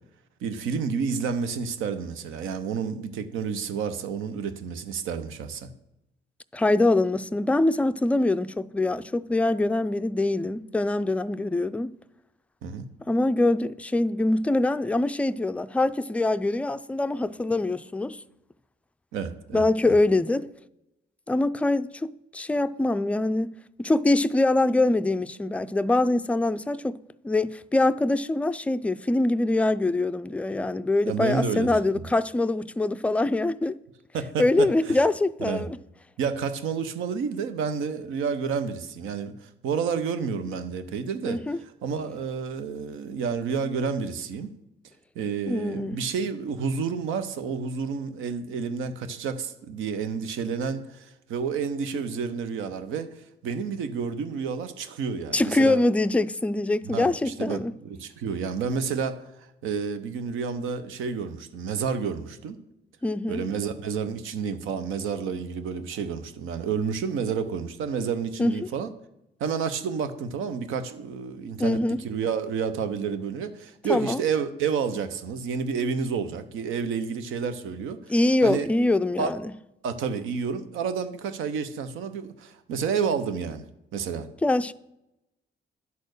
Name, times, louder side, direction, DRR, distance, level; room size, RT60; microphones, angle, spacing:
voice 1, 0.4-5.7 12.6-12.9 19.1-19.6 31.0-32.1 34.1-35.0 35.4-35.6 36.2-44.5 45.2-53.1 53.4-55.8 56.8-62.6 63.3-68.9 69.4-78.1 78.4-78.7 79.2-79.3 79.8-83.6 83.9-84.3, right 6 dB, 90° right, 0.8 m, -30 dB
voice 2, 6.5-11.9 13.1-18.2 19.5-20.5 21.3-27.0 27.2-33.8 34.4-35.8 41.3-41.6 45.5-46.0 55.3-57.7 63.0-63.5 68.4-68.7 71.6-72.0 73.9-74.2 78.1-79.4 84.4-84.7, left 2 dB, 5° left, 0.3 m, -24 dB
10.5 x 4.3 x 6.6 m
cardioid pair, 90°, 20 cm